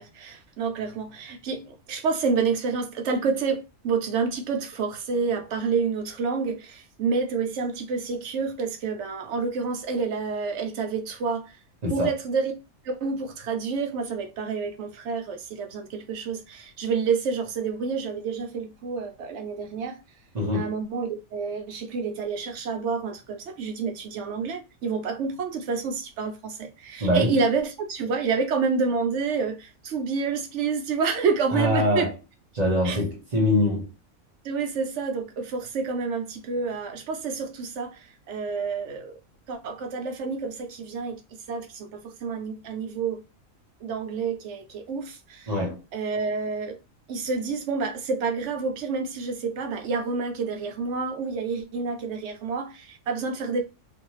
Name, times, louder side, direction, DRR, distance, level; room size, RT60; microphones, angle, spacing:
voice 1, 0.0-11.5 11.9-12.5 12.8-20.0 20.5-32.1 32.8-33.0 34.4-39.1 39.5-41.2 41.5-43.2 43.8-45.5 45.9-46.8 47.1-53.6, right 5 dB, 65° right, 0.9 m, -28 dB
voice 2, 20.3-20.7 27.0-27.4 31.5-32.1 32.5-33.9 45.5-45.8, left 1 dB, 35° right, 1.0 m, -23 dB
2.5 x 2.3 x 3.0 m
omnidirectional pair, 1.4 m